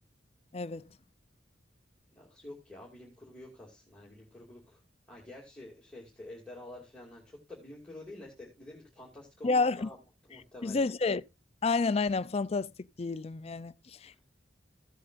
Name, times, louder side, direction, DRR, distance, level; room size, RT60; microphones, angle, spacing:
voice 1, 0.5-0.8 9.4-9.9 10.6-11.2 11.6-12.7 13.0-14.2, left 3 dB, 35° left, 0.4 m, -29 dB
voice 2, 2.1-4.8 5.1-10.0 10.3-10.8, left 1 dB, 5° left, 2.5 m, -48 dB
15.5 x 7.9 x 2.5 m
head